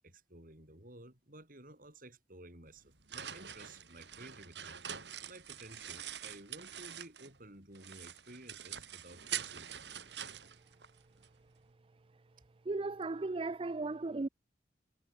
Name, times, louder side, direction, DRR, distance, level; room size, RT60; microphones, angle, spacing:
voice 1, 0.0-4.8 5.3-9.8, right 1 dB, 50° right, 6.9 m, -54 dB
sound 1, 2.7-7.4 7.7-11.3, right 9 dB, 70° right, 4.4 m, -45 dB
voice 2, 12.7-14.3, right 3 dB, 30° right, 0.4 m, -36 dB
head